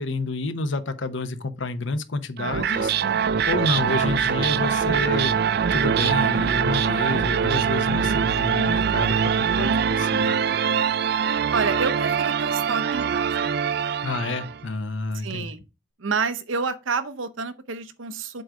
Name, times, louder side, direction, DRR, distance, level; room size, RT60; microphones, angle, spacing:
voice 1, 0.0-2.9 3.5-5.4 5.7-10.4 14.0-15.5, left 3 dB, 70° left, 0.9 m, -29 dB
sound 1, 2.4-14.6, right 7 dB, 50° right, 0.3 m, -23 dB
voice 2, 11.5-13.5 15.1-15.6 16.0-18.4, right 4 dB, 80° right, 0.8 m, -29 dB
7.8 x 3.8 x 4.8 m
head